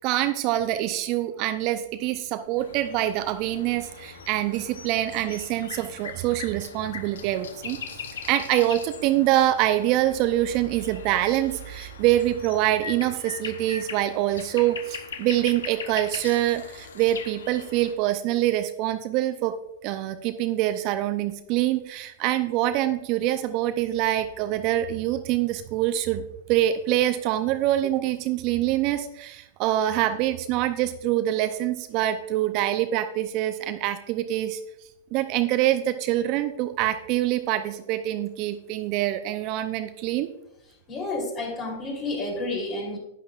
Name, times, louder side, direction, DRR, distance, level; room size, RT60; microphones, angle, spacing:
voice 1, 0.0-7.8 8.3-19.5 19.8-26.2 26.5-34.6 35.1-40.3, right 13 dB, 45° right, 9 dB, 0.6 m, -25 dB
sound 1, 2.6-17.9, left 6 dB, 70° left, 0.9 m, -40 dB
voice 2, 40.9-43.0, left 2 dB, 30° left, 1 dB, 3.4 m, -30 dB
11.0 x 9.3 x 2.5 m, 0.84 s
hypercardioid pair, 105°, 0 cm